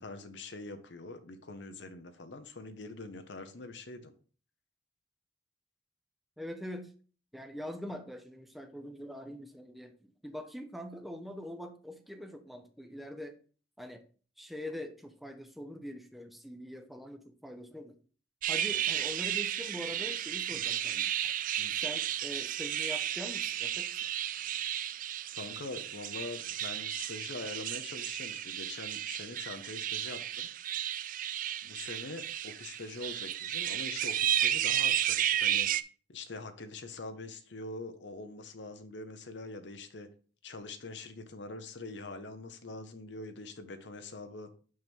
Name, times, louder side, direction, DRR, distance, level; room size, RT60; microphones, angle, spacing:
voice 1, 0.0-4.1 18.7-19.0 20.5-20.6 21.6-21.7 25.4-30.5 31.6-35.7 36.1-40.1 40.4-44.5, left 2 dB, 75° left, 8 dB, 0.9 m, -44 dB
voice 2, 6.4-6.9 7.3-13.4 13.8-14.0 14.4-18.0 18.5-21.3 21.8-23.9, equal, ahead, 6 dB, 0.6 m, -43 dB
sound 1, 18.4-35.8, right 11 dB, 50° right, 0.3 m, -33 dB
6.4 x 5.9 x 3.6 m, 0.40 s
head